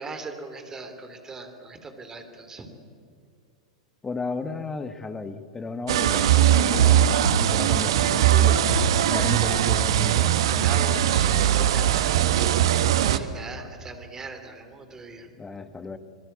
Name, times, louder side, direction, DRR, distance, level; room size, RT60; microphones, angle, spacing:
voice 1, 0.0-2.7 10.6-15.3, right 3 dB, 15° right, 7 dB, 3.4 m, -40 dB
voice 2, 4.0-7.1 7.4-8.7 9.1-11.0 15.3-16.0, left 4 dB, 15° left, 10 dB, 1.5 m, -34 dB
sound 1, 5.9-13.2, right 10 dB, 55° right, 1.2 m, -20 dB
26.0 x 22.0 x 8.3 m, 2.3 s
figure-of-eight pair, 95°, 3 cm